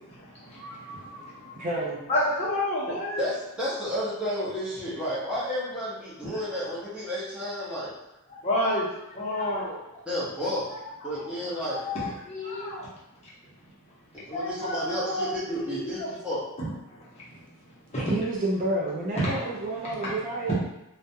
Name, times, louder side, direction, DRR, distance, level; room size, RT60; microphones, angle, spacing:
voice 1, 0.4-1.5 2.1-3.3 8.4-9.8 10.6-10.8 11.1-11.2 11.6-12.9 14.3-16.1 16.6-17.0 17.9-18.1 19.2-19.3 19.8-20.1 20.5-20.6, left 1 dB, 30° left, -8 dB, 0.7 m, -30 dB
voice 2, 1.6-2.0 18.0-20.6, right 2 dB, 40° right, -4 dB, 0.4 m, -29 dB
voice 3, 3.2-7.9 10.0-10.7 11.0-11.8 14.3-16.4, equal, 5° right, -10 dB, 0.8 m, -31 dB
2.2 x 2.1 x 2.7 m, 0.88 s
head